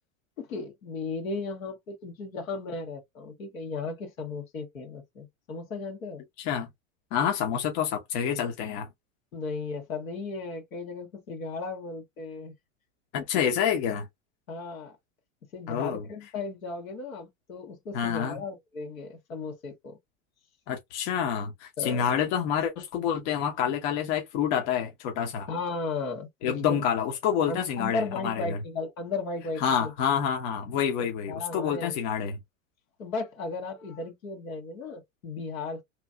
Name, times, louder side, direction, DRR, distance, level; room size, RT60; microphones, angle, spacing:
voice 1, 0.4-6.2 9.3-12.5 13.2-13.3 14.5-15.0 15.5-20.0 21.8-22.1 25.5-26.8 27.5-29.9 31.3-32.0 33.0-35.8, left 3 dB, 85° left, 1.5 m, -35 dB
voice 2, 6.4-6.7 7.1-8.9 13.1-14.1 15.7-16.1 17.9-18.4 20.7-25.5 26.4-28.6 29.6-32.4, left 8 dB, 55° left, 0.9 m, -28 dB
3.0 x 2.7 x 2.3 m
hypercardioid pair, 100°, 39 cm